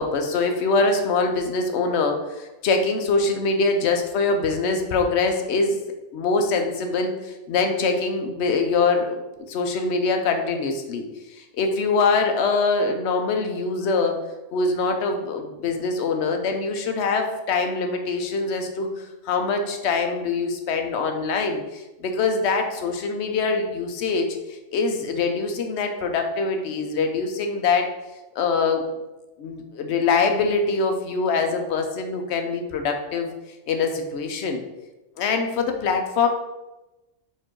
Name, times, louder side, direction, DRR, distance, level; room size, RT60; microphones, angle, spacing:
voice 1, 0.0-5.8 6.1-9.2 9.5-14.2 14.5-27.9 28.4-28.8 29.4-33.3 33.7-34.6 35.2-36.3, left 4 dB, 65° left, 4 dB, 0.8 m, -24 dB
4.4 x 2.5 x 4.4 m, 1.0 s
omnidirectional pair, 1.3 m